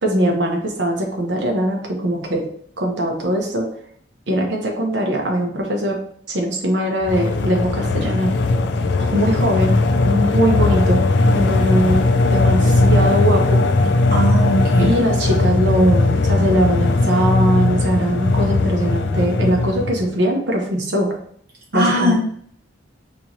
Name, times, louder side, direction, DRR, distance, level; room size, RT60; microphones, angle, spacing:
voice 1, 0.0-2.5 2.8-3.7 4.3-6.0 6.3-8.4 9.0-9.7 10.0-13.6 14.8-21.1 21.7-22.1, right 1 dB, 75° right, 1 dB, 1.0 m, -21 dB
sound 1, 7.0-20.1, left 2 dB, 65° left, 0.4 m, -18 dB
voice 2, 14.1-14.9 21.7-22.1, equal, 60° right, -3 dB, 1.5 m, -19 dB
4.4 x 3.0 x 2.7 m, 0.62 s
head